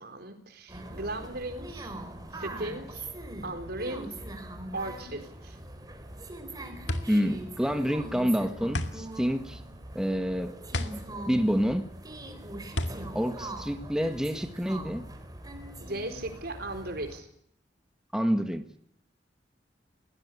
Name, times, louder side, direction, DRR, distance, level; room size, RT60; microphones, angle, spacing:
voice 1, 0.0-1.9 2.3-3.1 3.4-4.1 4.7-5.6 15.8-17.3, right 2 dB, 60° right, 7 dB, 4.3 m, -37 dB
sound 1, 0.7-17.2, right 1 dB, 20° right, 4.1 m, -41 dB
sound 2, 6.1-14.4, left 1 dB, 75° left, 2.2 m, -36 dB
voice 2, 7.1-9.6 9.9-10.5 11.3-11.8 13.1-15.1 18.1-18.7, equal, 5° right, 7 dB, 1.6 m, -28 dB
22.5 x 18.5 x 8.4 m, 0.67 s
head